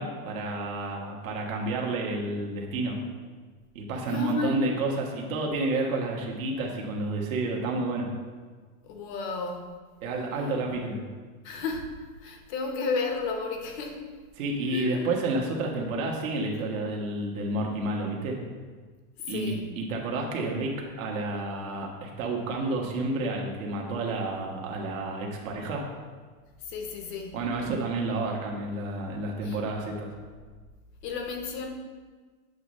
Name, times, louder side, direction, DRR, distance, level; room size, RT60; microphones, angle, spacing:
voice 1, 0.0-3.0 3.7-8.1 10.0-11.0 14.4-18.4 19.3-25.8 27.3-30.1, right 2 dB, 60° right, -1 dB, 1.5 m, -30 dB
voice 2, 3.9-4.6 8.8-9.8 11.4-14.1 14.7-15.1 19.2-19.7 26.7-27.5 29.4-29.6 31.0-31.7, left 4 dB, 35° left, 4 dB, 0.7 m, -33 dB
8.0 x 3.2 x 6.3 m, 1.5 s
supercardioid pair, 170°, 45 cm